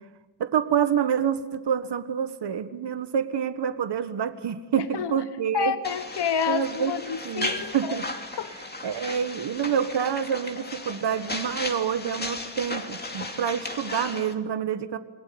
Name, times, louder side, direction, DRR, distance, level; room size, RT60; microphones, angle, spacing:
voice 1, 0.4-5.7 6.5-6.9 7.2-8.0 8.8-15.0, right 8 dB, 65° right, 10 dB, 1.7 m, -27 dB
voice 2, 4.8-5.1 5.5-8.0 8.4-8.6, left 7 dB, 65° left, 12 dB, 1.1 m, -29 dB
sound 1, 5.8-14.3, left 2 dB, 20° left, 2.6 m, -35 dB
28.0 x 21.0 x 9.5 m, 1.2 s
wide cardioid pair, 120°, 44 cm